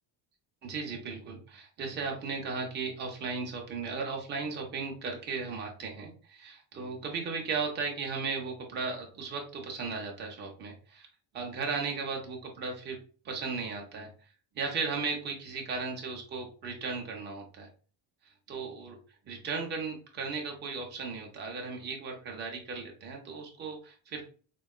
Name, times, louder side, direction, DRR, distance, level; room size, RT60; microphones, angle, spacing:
voice 1, 0.6-11.1 11.3-13.0 13.2-14.1 14.5-17.7 18.5-19.0 19.3-24.2, right 4 dB, 25° right, 0 dB, 0.3 m, -36 dB
3.7 x 2.2 x 2.2 m, 0.40 s
cardioid pair, 180°, 50 cm